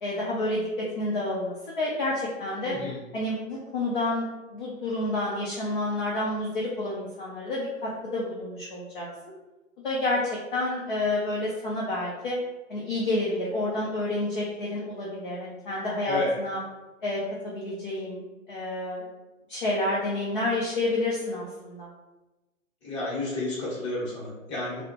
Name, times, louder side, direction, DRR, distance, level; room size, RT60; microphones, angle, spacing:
voice 1, 0.0-2.8 3.1-9.1 9.8-12.4 12.7-16.6 17.0-19.0 19.5-21.9, left 2 dB, 40° left, -5 dB, 0.4 m, -29 dB
voice 2, 2.6-3.0 16.0-16.3 22.8-24.8, left 2 dB, 20° left, -7 dB, 0.8 m, -31 dB
2.2 x 2.0 x 2.8 m, 1.1 s
figure-of-eight pair, 140°, 42 cm